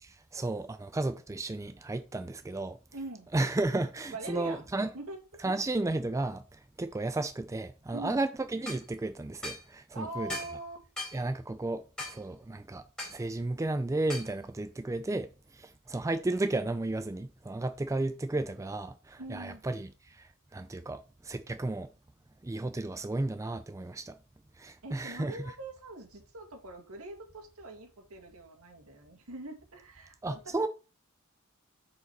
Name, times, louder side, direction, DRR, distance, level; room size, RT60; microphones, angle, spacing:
voice 1, 0.0-2.8 3.3-4.9 5.4-10.3 11.1-12.8 13.1-21.9 22.4-24.2 24.6-25.4 30.2-30.7, right 2 dB, 15° right, 0.3 m, -33 dB
voice 2, 2.9-3.3 4.1-4.7 4.9-5.4 7.9-8.2 9.9-10.8 19.2-19.6 24.8-30.4, right 2 dB, 75° right, 1.9 m, -43 dB
sound 1, 8.7-8.8 9.4-9.6 10.3-10.6 11.0-11.2 12.0-12.2 13.0-13.2 14.1-14.3, left 1 dB, 5° left, 3.9 m, -38 dB
6.7 x 4.9 x 4.5 m
head